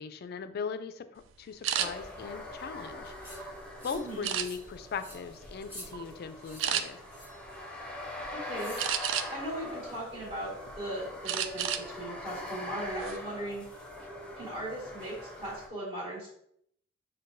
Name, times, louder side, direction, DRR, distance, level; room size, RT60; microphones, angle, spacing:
voice 1, 0.0-3.5 3.8-7.0, left 6 dB, 55° left, 10 dB, 0.3 m, -39 dB
sound 1, 1.6-1.9 2.5-3.5 4.2-4.8 5.3-5.6 5.9-6.1 6.6-6.8 8.8-9.5 10.0-10.7 11.3-11.9 12.2-12.4 12.8-13.2, right 9 dB, 75° right, 0.3 m, -32 dB
sound 2, 1.8-15.7, left 1 dB, 5° left, 0.6 m, -43 dB
sound 3, 3.2-3.4 3.8-4.1 4.4-4.7 5.0-5.2 5.6-5.9 6.4-6.7 7.1-7.4 8.5-8.9, equal, 10° right, 1.0 m, -47 dB
voice 2, 3.9-4.3 8.3-9.0 9.3-13.7 14.4-16.3, right 1 dB, 35° right, -9 dB, 1.5 m, -38 dB
6.3 x 2.2 x 2.5 m, 0.71 s
head